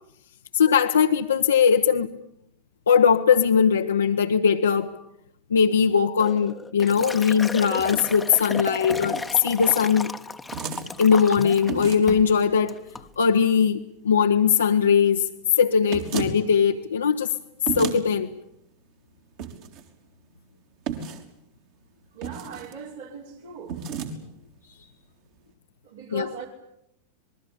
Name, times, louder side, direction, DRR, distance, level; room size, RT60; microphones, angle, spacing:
voice 1, 0.5-2.1 2.9-4.9 5.5-10.1 11.0-12.7 13.2-15.3 15.6-17.3 17.8-18.3 26.1-26.3, left 7 dB, 70° left, 1.1 m, -20 dB
Liquid, 6.2-11.7 12.1-12.3 12.7-13.1, left 3 dB, 10° left, 1.3 m, -34 dB
sound 1, 7.8-8.1 8.9-9.3 10.5-10.9 11.7-12.2 15.9-16.4 17.7-18.0 19.4-19.8 20.9-21.3 22.2-22.7 23.7-24.1, right 7 dB, 45° right, 3.8 m, -32 dB
voice 2, 22.1-23.8 25.8-26.5, right 5 dB, 65° right, 5.9 m, -39 dB
27.5 x 21.5 x 8.7 m
figure-of-eight pair, 90°, 0 cm